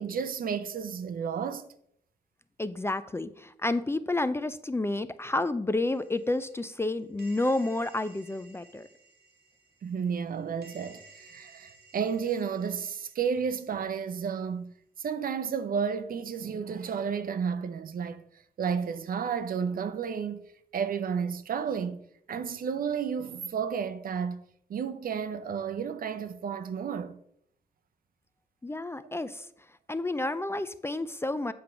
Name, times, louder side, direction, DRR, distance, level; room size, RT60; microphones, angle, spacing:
voice 1, 0.0-1.7 9.8-14.7 15.0-18.2 18.6-20.4 20.7-22.0 22.3-24.4 24.7-27.2 29.0-29.1, right 6 dB, 65° right, 0.6 m, -32 dB
voice 2, 2.6-8.9 28.6-29.5 29.9-31.5, left 2 dB, 15° left, 0.3 m, -30 dB
sound 1, 5.8-14.0, right 3 dB, 85° right, 1.4 m, -56 dB
7.7 x 3.7 x 5.7 m
cardioid pair, 90°, 16 cm